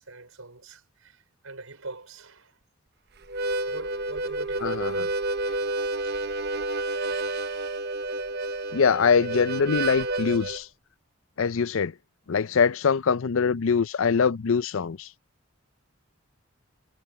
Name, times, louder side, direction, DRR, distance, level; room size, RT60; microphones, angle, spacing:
voice 1, 0.0-2.5 3.6-4.7, right 3 dB, 80° right, 4.9 m, -43 dB
Harmonica, 3.2-10.6, right 2 dB, 50° right, 0.9 m, -30 dB
voice 2, 4.6-5.1 8.7-10.7 11.4-11.9 12.3-15.1, left 6 dB, 70° left, 0.5 m, -23 dB
head